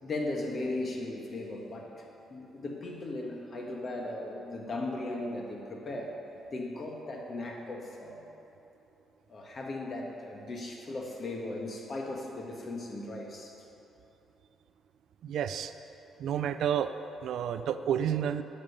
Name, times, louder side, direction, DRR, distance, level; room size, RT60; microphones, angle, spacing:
voice 1, 0.0-2.0 2.3-6.2 6.5-8.2 9.3-13.5, left 2 dB, 45° left, 0 dB, 1.5 m, -37 dB
voice 2, 15.2-15.7 16.2-16.9 17.2-18.4, right 9 dB, 75° right, 11 dB, 0.4 m, -30 dB
8.9 x 5.5 x 6.7 m, 3.0 s
cardioid pair, 90°, 0 cm